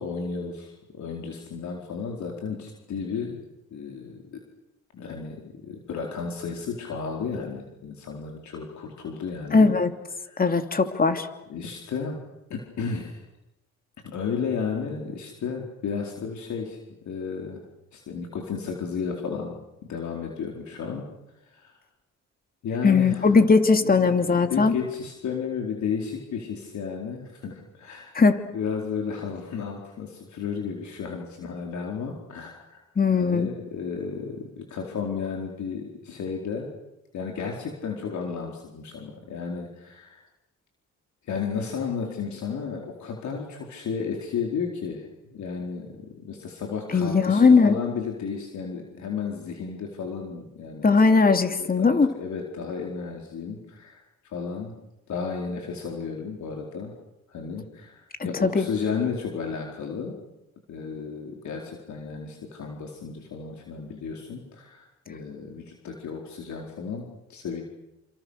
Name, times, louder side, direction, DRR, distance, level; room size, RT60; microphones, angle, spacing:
voice 1, 0.0-4.4 4.9-9.7 10.2-10.4 11.5-12.2 12.5-13.3 14.1-16.8 17.0-17.6 17.9-19.5 19.8-21.1 21.4-21.7 22.6-23.3 23.8-28.2 28.5-32.8 33.2-36.7 37.1-40.2 41.2-54.7 55.1-56.9 57.3-60.2 60.7-67.6, left 6 dB, 70° left, 1 dB, 4.5 m, -33 dB
voice 2, 9.5-9.9 10.4-11.3 22.8-24.7 28.1-28.4 33.0-33.5 46.9-47.8 50.8-52.1 58.4-58.7, left 4 dB, 30° left, 7 dB, 3.0 m, -19 dB
29.0 x 28.0 x 6.7 m, 0.92 s
cardioid pair, 90°, 30 cm